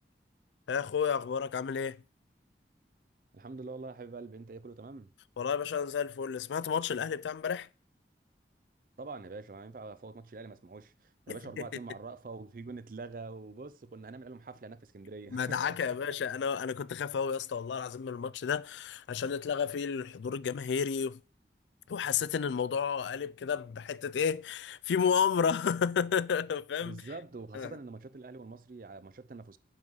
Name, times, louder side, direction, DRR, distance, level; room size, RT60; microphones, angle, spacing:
voice 1, 0.7-2.0 5.4-7.7 11.3-11.7 15.3-21.2 21.9-27.0 27.5-27.7, left 7 dB, 90° left, 0.4 m, -31 dB
voice 2, 3.3-5.1 9.0-16.2 26.8-29.6, right 3 dB, 50° right, 0.5 m, -45 dB
7.3 x 5.5 x 4.7 m
head